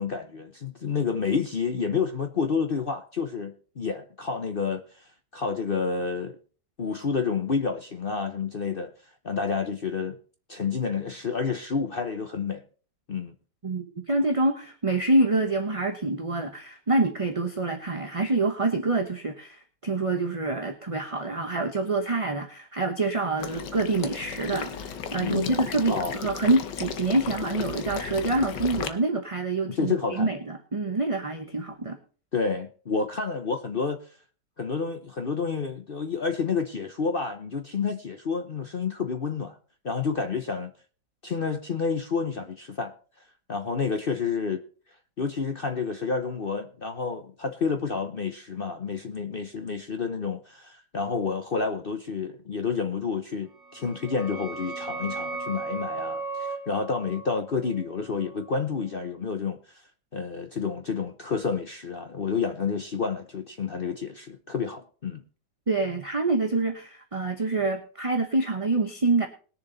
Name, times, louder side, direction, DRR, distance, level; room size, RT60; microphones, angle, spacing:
voice 1, 0.0-6.4 6.8-8.9 9.2-10.2 10.5-12.6 13.1-13.3 25.2-25.6 25.9-26.1 29.8-30.3 32.3-34.1 34.6-39.6 39.8-40.7 41.2-42.9 43.5-44.6 45.2-59.8 60.1-65.2, left 5 dB, 45° left, 0.7 m, -29 dB
voice 2, 13.6-32.0 65.7-69.3, right 2 dB, 25° right, 0.7 m, -26 dB
Water / Liquid, 23.4-28.9, left 7 dB, 75° left, 1.6 m, -35 dB
sound 1, 53.6-59.0, right 3 dB, 10° left, 3.5 m, -37 dB
20.5 x 7.0 x 4.0 m
omnidirectional pair, 2.0 m